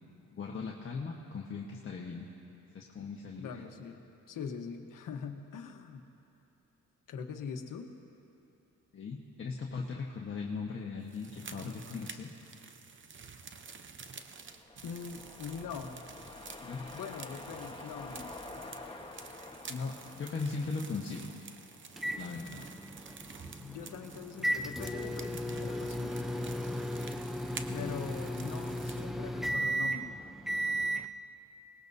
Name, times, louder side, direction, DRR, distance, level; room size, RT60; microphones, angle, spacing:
voice 1, 0.3-2.3 2.7-3.6 8.9-12.3 16.6-16.9 19.7-21.3 22.1-22.6 27.7-28.3, left 4 dB, 40° left, -1 dB, 1.3 m, -39 dB
voice 2, 3.4-6.0 7.1-7.9 14.8-15.9 16.9-18.3 23.4-26.2 27.7-30.2, left 6 dB, 75° left, 5 dB, 1.2 m, -42 dB
sound 1, 11.1-29.1, right 5 dB, 35° right, 0.8 m, -50 dB
sound 2, 14.2-22.6 23.0-23.1, left 2 dB, 15° left, 1.3 m, -48 dB
sound 3, 22.0-31.1, right 1 dB, ahead, 0.6 m, -35 dB
24.0 x 19.5 x 2.7 m, 2.8 s
cardioid pair, 100°, 32 cm